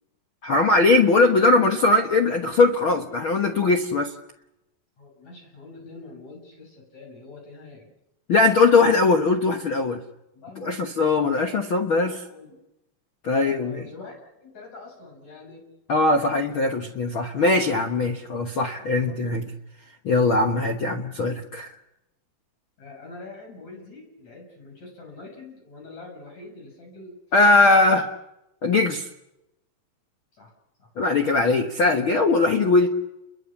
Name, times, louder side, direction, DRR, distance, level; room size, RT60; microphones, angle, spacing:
voice 1, 0.4-4.1 8.3-10.0 10.6-12.2 13.2-13.8 15.9-19.4 20.0-21.7 27.3-28.1 28.6-29.1 31.0-32.9, left 3 dB, 70° left, 4 dB, 1.2 m, -20 dB
voice 2, 5.0-7.9 10.3-10.9 12.1-12.6 13.3-15.6 18.9-19.5 22.8-28.0 30.3-30.5 30.8-31.3, left 3 dB, 45° left, 0 dB, 7.9 m, -44 dB
30.0 x 22.5 x 7.2 m, 0.91 s
omnidirectional pair, 4.6 m